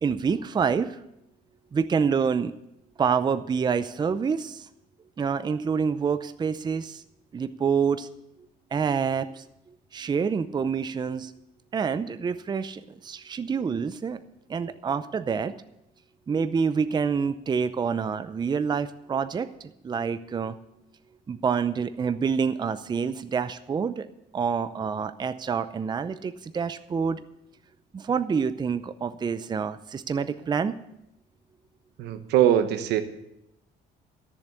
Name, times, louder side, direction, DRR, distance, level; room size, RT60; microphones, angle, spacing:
voice 1, 0.0-1.0 1.7-2.5 3.0-4.7 5.2-7.0 7.3-8.1 8.7-9.4 9.9-11.3 11.7-14.2 14.5-15.6 16.3-20.6 21.3-24.1 24.3-27.2 27.9-30.7, right 6 dB, 25° right, 12 dB, 0.6 m, -27 dB
voice 2, 32.0-33.0, right 10 dB, 80° right, 9 dB, 1.2 m, -22 dB
13.5 x 7.2 x 8.1 m, 0.83 s
cardioid pair, 110°, 17 cm